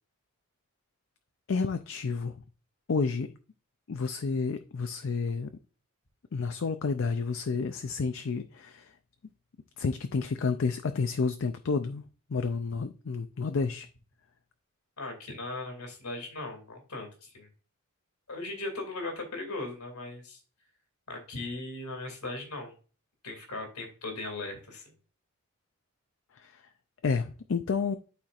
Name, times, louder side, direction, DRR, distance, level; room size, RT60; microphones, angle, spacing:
voice 1, 1.5-2.3 2.9-3.3 3.9-5.5 6.3-8.9 9.8-12.0 12.3-13.9 26.3-26.6 27.0-28.0, left 4 dB, 60° left, 0.5 m, -30 dB
voice 2, 15.0-17.5 18.3-20.4 21.1-22.7 23.2-24.8, left 2 dB, 85° left, 2.4 m, -38 dB
11.5 x 4.4 x 2.4 m
head